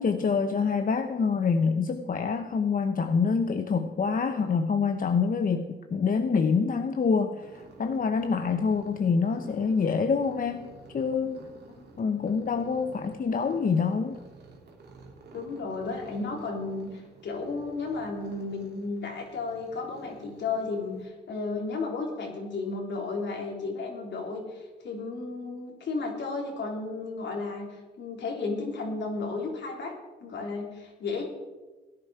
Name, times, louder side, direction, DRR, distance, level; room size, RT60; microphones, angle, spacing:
voice 1, 0.0-10.7 10.9-11.5 12.0-14.2, left 5 dB, 50° left, 7 dB, 0.9 m, -26 dB
sound 1, 7.4-21.1, right 3 dB, 65° right, 3.0 m, -51 dB
voice 2, 15.3-29.9 30.2-31.2, left 3 dB, 75° left, 0 dB, 3.6 m, -33 dB
17.0 x 10.5 x 4.9 m, 1.2 s
cardioid pair, 70°, 19 cm